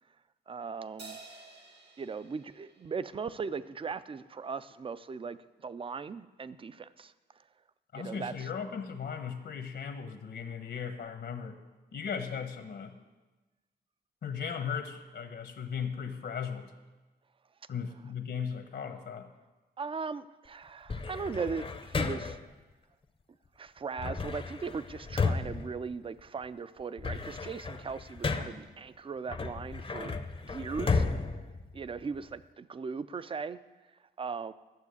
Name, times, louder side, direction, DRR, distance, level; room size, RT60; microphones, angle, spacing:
voice 1, 0.5-1.2 2.0-7.1 7.9-8.5 19.8-22.4 23.6-31.1 31.7-33.6 34.2-34.5, right 5 dB, 30° right, 15 dB, 0.4 m, -38 dB
Crash cymbal, 1.0-3.7, right 3 dB, 70° right, 1.7 m, -51 dB
voice 2, 7.9-11.6 11.9-12.9 14.2-16.7 17.7-19.3, left 7 dB, 75° left, 6 dB, 1.1 m, -37 dB
sound 1, 20.9-22.5 24.0-26.4 26.8-28.7 29.3-32.3, left 4 dB, 30° left, 0.6 m, -34 dB
12.5 x 7.1 x 8.3 m, 1.2 s
wide cardioid pair, 140°, 18 cm